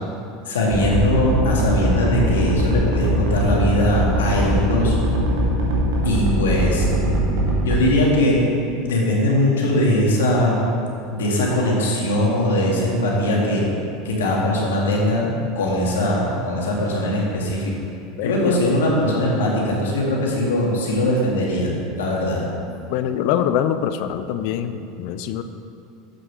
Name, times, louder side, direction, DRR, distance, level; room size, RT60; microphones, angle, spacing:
voice 1, 0.4-5.0 6.0-6.9 7.6-8.4 8.8-10.6 11.1-13.7 14.0-17.7 18.2-22.4, left 1 dB, 85° left, -3 dB, 2.0 m, -20 dB
sound 1, 0.7-7.8, right 1 dB, 75° right, 2.1 m, -20 dB
voice 2, 18.2-18.6 22.9-25.4, left 9 dB, 65° left, 10 dB, 0.5 m, -24 dB
7.6 x 6.4 x 6.1 m, 2.6 s
hypercardioid pair, 95°, 0 cm